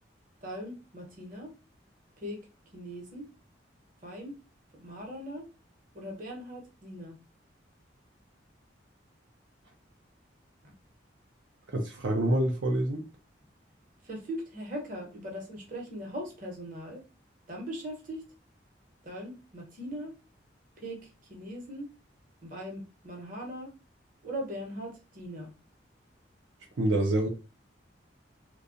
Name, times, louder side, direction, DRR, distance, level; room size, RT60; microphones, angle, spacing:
voice 1, 0.4-1.5 2.2-2.4 2.7-3.3 4.0-4.3 4.7-5.4 5.9-7.2 10.6-10.7 14.0-17.0 17.5-18.2 19.0-20.1 20.8-21.0 21.3-21.9 22.4-23.7 24.2-25.5, equal, 45° right, 0.9 m, -40 dB
voice 2, 11.7-13.0 26.8-27.3, right 1 dB, 80° right, 0.5 m, -26 dB
2.7 x 2.2 x 2.5 m
head